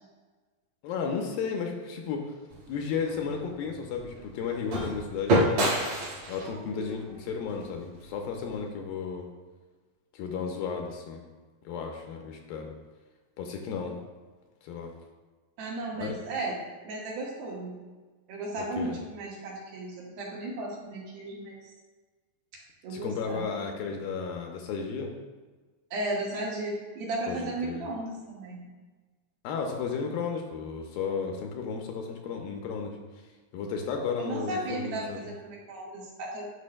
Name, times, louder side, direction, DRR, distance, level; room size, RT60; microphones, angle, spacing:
voice 1, 0.8-2.4 2.7-5.7 6.3-9.3 10.1-11.2 11.7-12.7 13.4-14.0 14.6-14.9 16.0-16.2 18.6-19.0 22.9-25.1 27.3-27.9 29.4-33.0 33.5-35.2, left 5 dB, 80° left, 2 dB, 2.4 m, -33 dB
sound 1, 2.5-8.6, right 1 dB, 55° right, 2.9 m, -30 dB
voice 2, 15.6-16.5 16.8-17.8 18.3-21.7 22.8-23.4 25.9-28.6 34.2-36.5, right 2 dB, 70° right, -4 dB, 3.3 m, -35 dB
11.5 x 6.3 x 2.2 m, 1.3 s
omnidirectional pair, 4.4 m